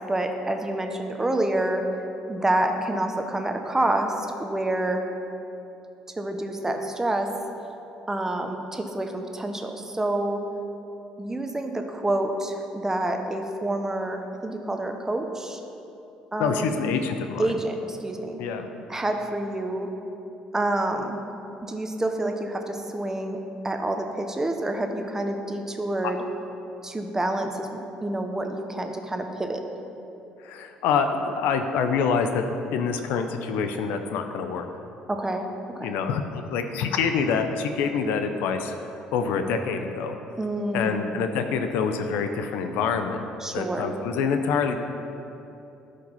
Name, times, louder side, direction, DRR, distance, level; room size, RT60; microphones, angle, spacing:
voice 1, 0.1-1.8 2.3-5.0 6.2-7.3 8.1-10.5 11.2-15.6 16.3-16.8 17.4-18.4 18.9-19.9 20.5-21.2 21.6-23.4 23.6-26.2 26.8-29.6 35.1-35.5 35.8-35.9 40.4-41.0 43.4-43.8, right 1 dB, 15° right, 4 dB, 1.2 m, -28 dB
voice 2, 16.4-17.5 18.4-18.7 30.4-32.4 32.7-34.7 35.8-38.7 39.1-40.2 40.7-43.2 43.5-44.8, left 6 dB, 75° left, 7 dB, 0.7 m, -26 dB
12.5 x 5.2 x 5.5 m, 2.9 s
hypercardioid pair, 60°, 3 cm